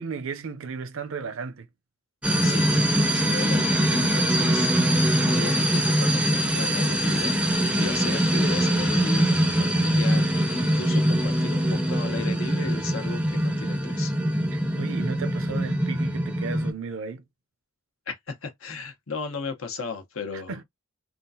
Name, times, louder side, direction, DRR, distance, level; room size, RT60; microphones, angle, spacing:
voice 1, 0.0-1.7 14.5-17.2 20.3-20.6, right 4 dB, 65° right, 0.6 m, -34 dB
sound 1, 2.2-16.7, right 1 dB, 5° right, 0.5 m, -23 dB
voice 2, 3.0-14.1 18.1-20.5, left 4 dB, 70° left, 1.0 m, -36 dB
3.6 x 2.4 x 2.7 m
head